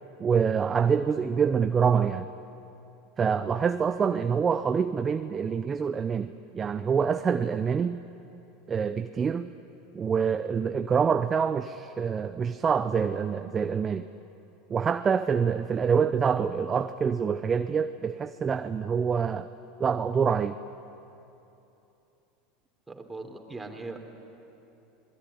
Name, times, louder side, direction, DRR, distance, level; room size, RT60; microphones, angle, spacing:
voice 1, 0.2-2.3 3.2-8.0 8.7-9.5 9.9-14.1 14.7-19.5 19.8-20.6, right 6 dB, 30° right, 10 dB, 0.7 m, -26 dB
voice 2, 22.9-24.1, right 3 dB, 15° right, 3 dB, 3.5 m, -40 dB
27.5 x 20.5 x 9.9 m, 3.0 s
hypercardioid pair, 95°, 0 cm